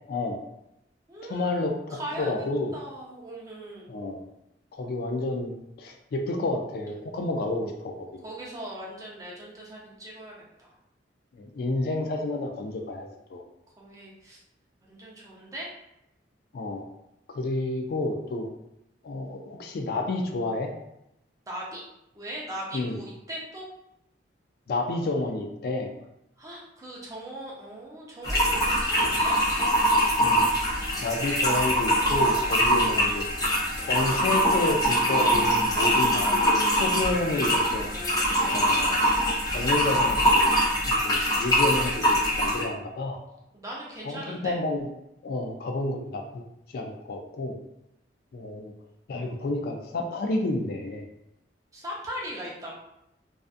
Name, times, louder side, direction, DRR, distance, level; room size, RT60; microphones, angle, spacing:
voice 1, 0.1-0.4 1.2-2.8 3.9-4.3 4.7-5.5 5.8-8.2 11.4-13.4 16.5-16.8 17.3-18.5 19.0-20.7 22.7-23.0 24.7-25.9 30.2-30.5 31.0-33.2 33.8-37.9 38.5-38.9 39.5-40.6 40.9-43.2 44.0-44.9 45.2-46.4 46.7-47.6 48.3-48.7 49.1-51.0, left 2 dB, 55° left, 3 dB, 0.3 m, -30 dB
voice 2, 1.1-2.3 2.7-3.9 8.2-10.7 13.8-14.4 14.8-15.7 21.5-21.8 22.1-23.7 26.4-29.4 37.9-39.0 43.5-44.5 51.7-52.8, right 1 dB, 20° right, -5 dB, 0.6 m, -39 dB
sound 1, 28.2-42.7, equal, 20° left, 0.7 m, -23 dB
2.5 x 2.3 x 2.4 m, 0.84 s
head